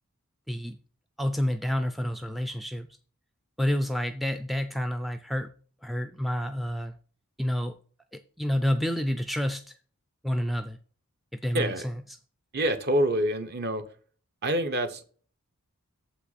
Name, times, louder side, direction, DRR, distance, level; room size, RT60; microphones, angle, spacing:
voice 1, 0.5-0.8 1.2-2.9 3.6-5.5 5.8-6.9 7.4-7.8 8.1-9.7 10.2-10.8 11.4-11.7, equal, ahead, 0.3 m, -29 dB
voice 2, 11.5-11.9 12.5-13.9 14.4-15.1, right 1 dB, 45° right, 0.9 m, -26 dB
7.7 x 5.7 x 4.1 m
head